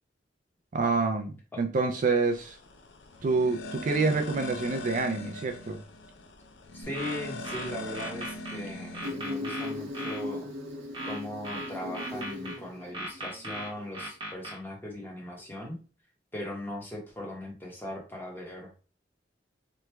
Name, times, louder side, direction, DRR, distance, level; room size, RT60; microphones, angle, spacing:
voice 1, 0.7-2.6 3.2-5.8, right 3 dB, 45° right, 5 dB, 0.4 m, -27 dB
sound 1, 2.2-9.1, left 1 dB, 85° left, 0.5 m, -41 dB
voice 2, 6.7-10.5 11.0-15.8 16.3-18.7, left 1 dB, 10° left, -2 dB, 1.0 m, -39 dB
sound 2, 6.8-8.6 8.9-10.2 10.9-12.6 12.9-14.6, right 1 dB, 30° right, 0.9 m, -38 dB
Insect, 9.0-14.0, left 2 dB, 85° right, 0.7 m, -38 dB
3.0 x 2.2 x 3.3 m, 0.35 s
head